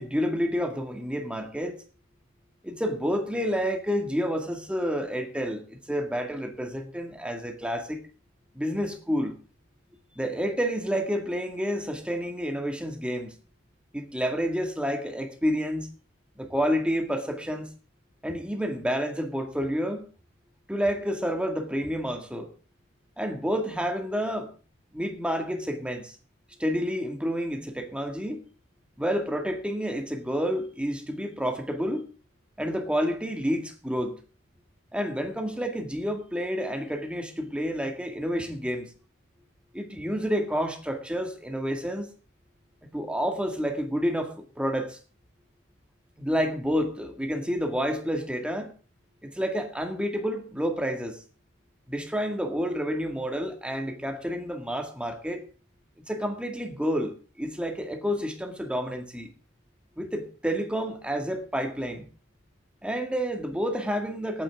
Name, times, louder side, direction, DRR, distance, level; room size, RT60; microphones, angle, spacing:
voice 1, 0.0-1.8 2.6-8.0 8.5-9.4 10.2-13.3 13.9-15.9 16.4-17.7 18.2-20.1 20.7-22.5 23.2-24.5 24.9-26.2 26.6-28.4 29.0-32.1 32.6-34.2 34.9-38.9 39.7-42.1 42.9-45.0 46.2-48.7 49.2-51.2 51.9-55.5 56.1-59.3 60.0-62.1 62.8-64.4, equal, 5° right, 2.0 m, -29 dB
19.0 x 9.3 x 3.7 m
head